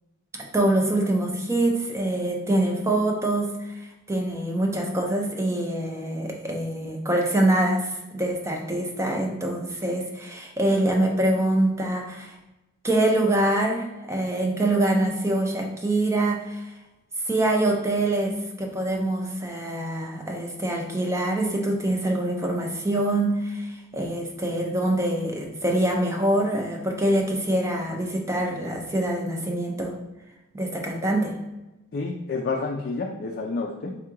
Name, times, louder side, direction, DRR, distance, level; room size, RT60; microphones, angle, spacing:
voice 1, 0.5-12.3 12.8-16.7 17.3-29.9 30.5-31.4, right 1 dB, 15° right, 1 dB, 0.5 m, -25 dB
voice 2, 31.9-34.0, left 3 dB, 45° left, 1 dB, 0.4 m, -29 dB
3.5 x 2.4 x 4.4 m, 1.0 s
head